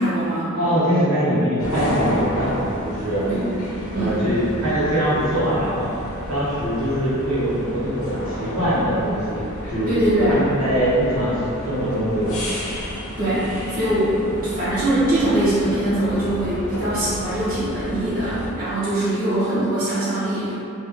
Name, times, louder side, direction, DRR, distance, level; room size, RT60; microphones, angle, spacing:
voice 1, 0.0-0.5 3.3-3.5 3.9-4.2 9.6-10.4 13.2-20.5, right 1 dB, 40° right, -12 dB, 1.0 m, -22 dB
voice 2, 0.5-3.3 3.9-5.9 6.3-9.4 9.7-9.9 10.3-12.4, equal, 80° right, -10 dB, 1.3 m, -22 dB
sound 1, 1.6-18.5, equal, 70° left, 0.7 m, -31 dB
3.3 x 2.7 x 3.5 m, 2.7 s
head